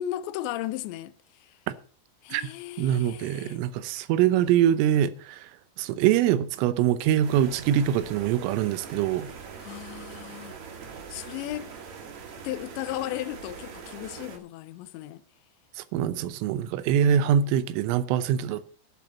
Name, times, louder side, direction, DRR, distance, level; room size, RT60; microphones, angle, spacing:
voice 1, 0.0-1.6 2.2-3.6 9.6-10.6 11.1-11.7 12.3-15.2, left 13 dB, 80° left, 2.7 m, -36 dB
voice 2, 2.8-5.5 5.8-9.3 15.8-18.7, right 10 dB, 90° right, 3.4 m, -24 dB
sound 1, 7.2-14.4, right 6 dB, 50° right, 2.3 m, -42 dB
12.0 x 7.4 x 7.1 m
omnidirectional pair, 5.6 m